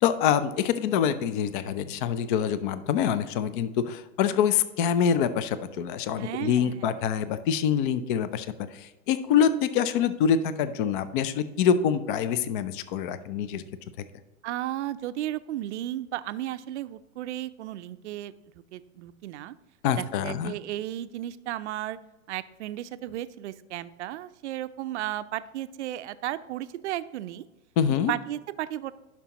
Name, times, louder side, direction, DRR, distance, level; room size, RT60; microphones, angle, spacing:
voice 1, 0.0-8.5 8.7-13.6 19.8-20.5 27.8-28.1, left 8 dB, 40° left, 13 dB, 0.5 m, -25 dB
voice 2, 6.1-7.0 14.4-18.3 18.7-19.5 20.0-22.0 22.3-27.4 27.9-28.9, right 13 dB, 55° right, 14 dB, 0.5 m, -34 dB
11.0 x 6.0 x 2.9 m, 1.1 s
hypercardioid pair, 120°, 42 cm